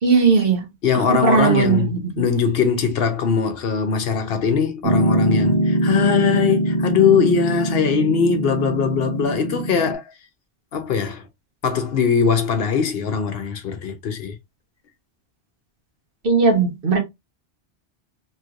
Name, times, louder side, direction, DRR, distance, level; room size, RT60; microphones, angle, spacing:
voice 1, 0.0-0.7 0.9-2.2 16.2-17.0, right 5 dB, 55° right, 1.2 m, -18 dB
voice 2, 0.8-1.9 2.2-10.0 10.7-11.2 11.6-14.4, left 6 dB, 65° left, 0.9 m, -21 dB
Piano, 4.8-9.9, right 1 dB, 80° right, 1.1 m, -22 dB
3.1 x 3.0 x 2.4 m
omnidirectional pair, 1.1 m